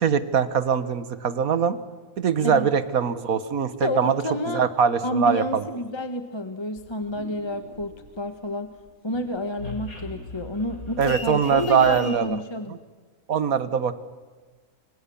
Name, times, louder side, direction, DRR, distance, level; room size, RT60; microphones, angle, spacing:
voice 1, 0.0-1.8 2.2-5.6 11.0-12.4 12.7-12.8 13.3-13.9, right 7 dB, 75° right, 13 dB, 1.7 m, -22 dB
voice 2, 3.7-4.7 5.0-8.7 9.0-12.8, left 1 dB, 20° left, 8 dB, 1.3 m, -30 dB
sound 1, 6.8-8.5 8.8-12.2, left 2 dB, 80° left, 4.4 m, -39 dB
30.0 x 26.0 x 7.1 m, 1.3 s
omnidirectional pair, 1.5 m